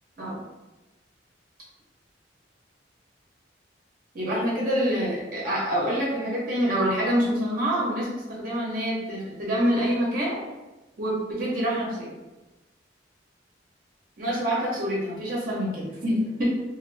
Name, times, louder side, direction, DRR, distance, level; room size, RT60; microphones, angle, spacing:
voice 1, 4.1-10.3 11.0-12.1 14.2-16.5, equal, 50° right, -5 dB, 0.8 m, -26 dB
2.5 x 2.5 x 3.2 m, 1.1 s
head